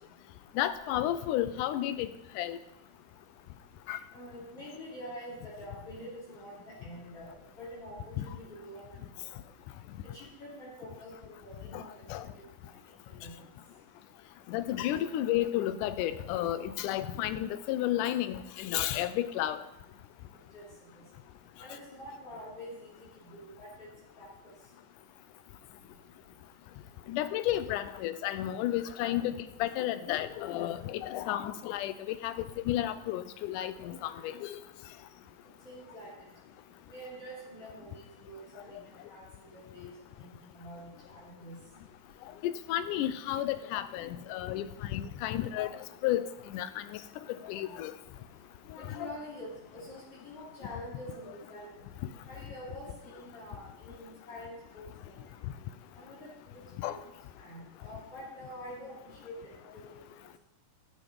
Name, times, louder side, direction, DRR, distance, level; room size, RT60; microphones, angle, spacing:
voice 1, 0.6-2.1 2.4-2.6 3.9-4.0 8.2-8.3 11.7-11.8 12.1-12.2 14.5-19.6 27.1-32.3 32.7-34.6 42.4-45.7 46.0-46.2 46.5-46.7 47.5-47.9 49.0-49.2 56.8-57.0, left 13 dB, 85° left, 13 dB, 2.1 m, -32 dB
voice 2, 4.1-7.3 7.6-9.4 10.1-12.5 13.1-13.4 20.5-20.7 21.0-21.1 21.6-23.9 24.2-24.3 35.6-36.1 36.9-39.2 39.5-39.9 40.2-40.3 40.5-41.6 48.8-51.8 52.3-54.9 55.9-57.0 57.4-58.9 59.2-59.8, equal, 50° left, -7 dB, 3.9 m, -46 dB
11.5 x 6.9 x 5.2 m, 0.93 s
omnidirectional pair, 3.6 m